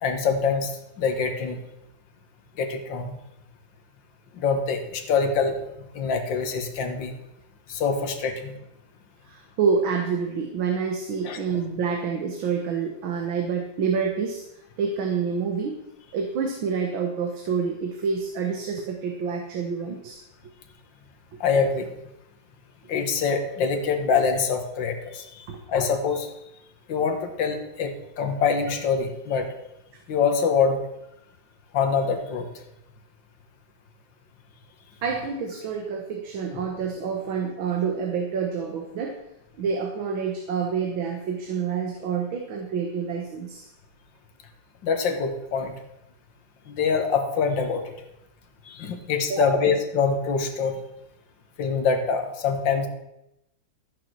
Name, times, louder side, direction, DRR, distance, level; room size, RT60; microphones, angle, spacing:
voice 1, 0.0-0.7 1.0-1.6 2.6-3.2 4.4-5.5 5.9-7.2 7.7-8.5 11.2-11.4 21.4-21.9 22.9-26.3 26.9-29.5 30.1-30.8 31.7-32.5 44.8-45.7 46.7-47.9 48.7-50.8 51.6-52.9, left 5 dB, 70° left, 5 dB, 2.1 m, -25 dB
voice 2, 9.3-14.4 14.8-15.8 16.1-20.2 25.5-25.6 35.0-39.2 39.6-43.7 49.3-49.7, right 6 dB, 85° right, 2 dB, 2.1 m, -27 dB
14.5 x 6.7 x 6.2 m, 0.87 s
omnidirectional pair, 2.1 m